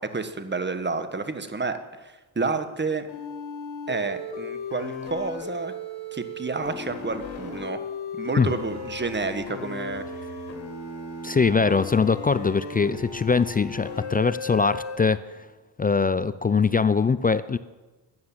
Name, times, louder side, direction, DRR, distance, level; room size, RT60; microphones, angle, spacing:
voice 1, 0.1-3.1 3.9-5.7 6.1-7.8 8.2-10.3, right 4 dB, 25° right, 10 dB, 1.4 m, -30 dB
sound 1, 3.1-15.0, left 3 dB, 80° left, 2.6 m, -36 dB
voice 2, 11.2-15.2 15.8-17.6, left 5 dB, 20° left, 16 dB, 0.4 m, -22 dB
13.0 x 9.6 x 7.3 m, 1.2 s
cardioid pair, 70°, 46 cm